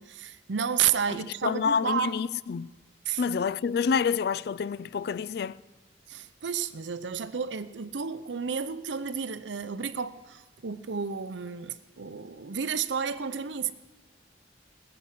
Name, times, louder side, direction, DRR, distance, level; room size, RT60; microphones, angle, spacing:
voice 1, 0.0-2.1 3.0-3.2 6.1-13.7, right 7 dB, 80° right, 0.7 m, -31 dB
voice 2, 1.1-2.7 3.2-5.6, left 6 dB, 60° left, 0.3 m, -28 dB
20.5 x 6.9 x 7.6 m
head